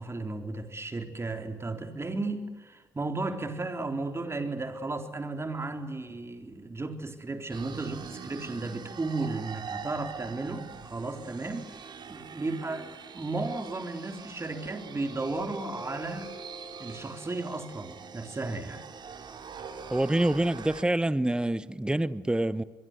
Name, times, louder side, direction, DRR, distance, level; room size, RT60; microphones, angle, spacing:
voice 1, 0.0-16.3 16.8-18.8, right 3 dB, 25° right, 3.9 m, -34 dB
sound 1, 7.5-20.8, right 6 dB, 45° right, 2.9 m, -44 dB
sound 2, 14.5-19.5, equal, 65° left, 6.2 m, -48 dB
voice 2, 19.9-22.6, right 1 dB, 10° right, 1.1 m, -26 dB
26.0 x 22.5 x 8.1 m
hypercardioid pair, 45°, 10 cm